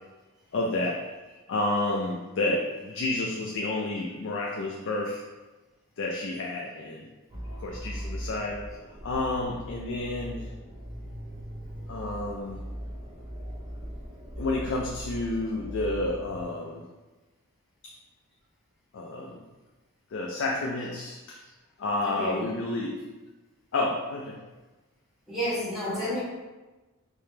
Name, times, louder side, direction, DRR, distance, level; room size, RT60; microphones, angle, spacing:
voice 1, 0.5-1.0 1.5-5.2 6.0-7.1 7.6-10.5 11.9-12.6 14.4-16.9 18.9-19.4 20.1-21.4 21.8-23.0 23.7-24.4, left 2 dB, 55° left, -1 dB, 0.4 m, -30 dB
sound 1, 7.3-16.4, equal, 25° right, 0.6 m, -39 dB
voice 2, 22.0-22.4 25.3-26.2, equal, ahead, -10 dB, 1.4 m, -30 dB
3.4 x 2.8 x 3.2 m, 1.2 s
head